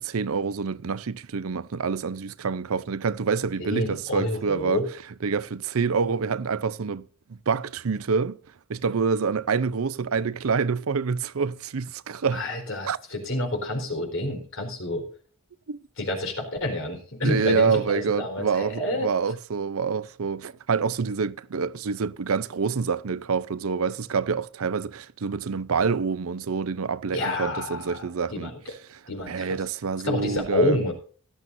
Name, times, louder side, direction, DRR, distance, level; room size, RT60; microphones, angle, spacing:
voice 1, 0.0-4.8 5.2-8.4 8.7-12.4 12.8-13.0 15.7-15.8 17.2-28.5 28.9-29.0 29.3-30.8, right 5 dB, 75° right, 0.6 m, -27 dB
voice 2, 3.6-4.9 12.3-15.0 16.0-19.1 27.1-28.0 28.3-28.6 29.1-29.6 30.0-30.9, left 1 dB, 65° left, 4.4 m, -28 dB
17.0 x 12.5 x 2.7 m
head